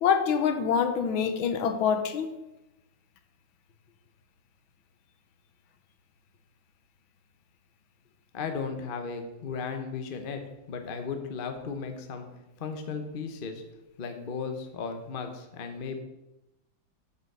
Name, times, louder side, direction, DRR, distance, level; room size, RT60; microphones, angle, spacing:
voice 1, 0.0-2.3, left 7 dB, 75° left, 8 dB, 1.5 m, -25 dB
voice 2, 8.3-12.3 12.6-13.6 14.0-16.0, left 5 dB, 55° left, 6 dB, 0.6 m, -35 dB
8.1 x 5.2 x 6.6 m, 0.98 s
omnidirectional pair, 2.3 m